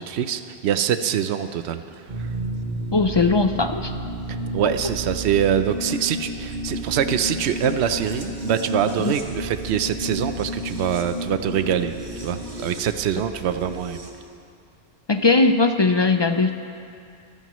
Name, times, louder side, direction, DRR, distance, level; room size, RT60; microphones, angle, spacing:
voice 1, 0.0-1.8 2.2-2.3 4.5-11.9 12.2-14.1, right 9 dB, 80° right, 10 dB, 0.9 m, -24 dB
sound 1, 2.1-14.1, equal, 55° right, 1.7 m, -32 dB
voice 2, 2.9-3.9 9.0-9.1 13.7-13.8 15.1-16.5, left 3 dB, 45° left, 7 dB, 0.3 m, -19 dB
24.0 x 15.0 x 3.1 m, 2.4 s
omnidirectional pair, 1.1 m